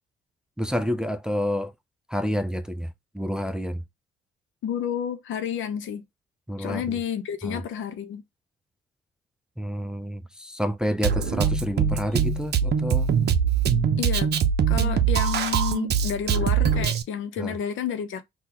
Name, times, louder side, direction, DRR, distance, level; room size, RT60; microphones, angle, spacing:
voice 1, 0.6-1.7 2.1-2.9 3.1-3.8 6.5-7.0 7.4-7.6 9.6-13.1 17.4-17.5, equal, 5° right, 0.4 m, -29 dB
voice 2, 4.6-6.0 6.6-8.2 14.0-14.3 14.7-18.2, left 8 dB, 75° left, 0.7 m, -30 dB
Drum kit, 11.0-17.0, right 7 dB, 60° right, 0.6 m, -23 dB
3.9 x 2.3 x 2.8 m
cardioid pair, 90°, 20 cm